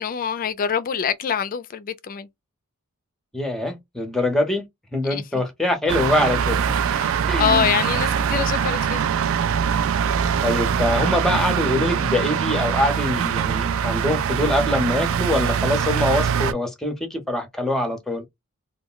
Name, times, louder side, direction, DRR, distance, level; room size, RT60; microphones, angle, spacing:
voice 1, 0.0-2.3 5.1-5.2 6.9-9.1, left 7 dB, 40° left, 0.3 m, -25 dB
voice 2, 3.3-4.7 4.9-6.8 7.3-7.7 10.4-18.2, left 1 dB, ahead, 0.6 m, -24 dB
sound 1, 5.9-16.5, right 7 dB, 60° right, 0.3 m, -23 dB
2.2 x 2.1 x 3.7 m
head